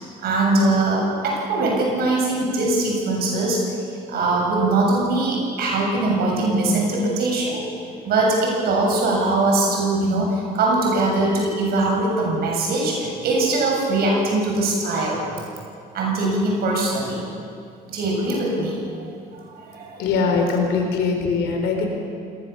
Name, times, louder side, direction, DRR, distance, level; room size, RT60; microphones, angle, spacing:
voice 1, 0.2-3.6 3.9-7.6 8.0-15.3 15.9-17.2 17.9-18.8 19.3-20.3, right 2 dB, 65° right, -1 dB, 7.4 m, -21 dB
voice 2, 20.0-21.9, left 4 dB, 85° left, 3 dB, 4.7 m, -21 dB
27.5 x 19.0 x 7.3 m, 2.4 s
cardioid pair, 110°, 17 cm